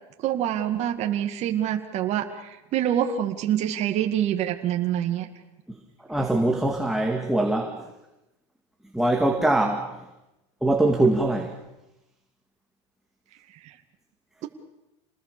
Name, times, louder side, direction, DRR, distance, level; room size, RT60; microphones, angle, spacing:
voice 1, 0.2-5.3 13.6-13.8, right 10 dB, 45° right, 4 dB, 2.2 m, -26 dB
voice 2, 6.1-7.9 8.9-10.0 10.6-11.5, right 2 dB, ahead, 2 dB, 2.2 m, -23 dB
28.0 x 20.5 x 6.9 m, 0.95 s
supercardioid pair, 125°, 15 cm